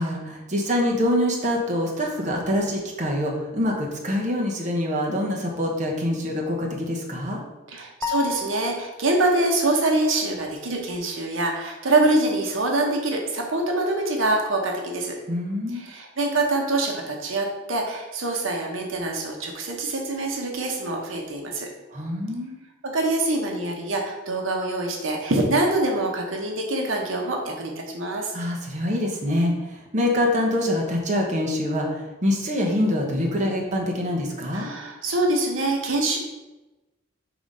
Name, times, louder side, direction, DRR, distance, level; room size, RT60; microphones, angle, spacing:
voice 1, 0.0-7.4 15.3-15.8 21.9-22.5 28.3-34.7, left 1 dB, 40° right, -1 dB, 1.0 m, -25 dB
voice 2, 7.7-15.2 15.7-21.7 22.8-28.3 34.5-36.2, right 2 dB, 80° right, 1 dB, 1.0 m, -25 dB
sound 1, 8.0-9.1, left 6 dB, 15° left, 0.5 m, -31 dB
4.9 x 3.7 x 5.3 m, 1.1 s
head